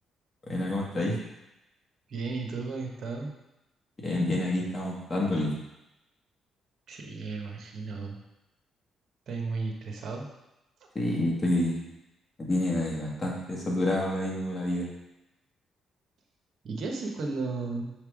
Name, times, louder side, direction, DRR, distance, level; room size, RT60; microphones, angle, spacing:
voice 1, 0.5-1.2 4.0-5.5 10.9-11.8 12.4-14.9, left 1 dB, 25° left, -3 dB, 1.7 m, -28 dB
voice 2, 2.1-3.3 6.9-8.2 9.3-10.3 16.6-17.9, right 3 dB, 60° right, 1 dB, 1.0 m, -34 dB
5.9 x 3.4 x 4.9 m, 0.94 s
cardioid pair, 90°, 0 cm